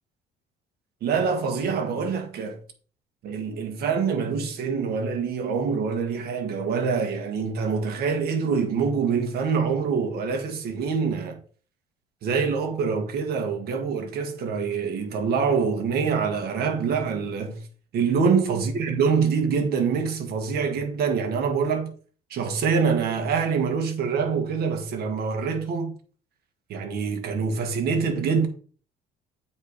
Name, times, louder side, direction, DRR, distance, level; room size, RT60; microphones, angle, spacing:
voice 1, 1.0-2.6 3.2-11.4 12.2-17.6 17.9-21.9 22.3-25.9 26.7-28.5, right 5 dB, 70° right, 1.7 m, -25 dB
8.0 x 4.3 x 5.1 m
cardioid pair, 110°, 17 cm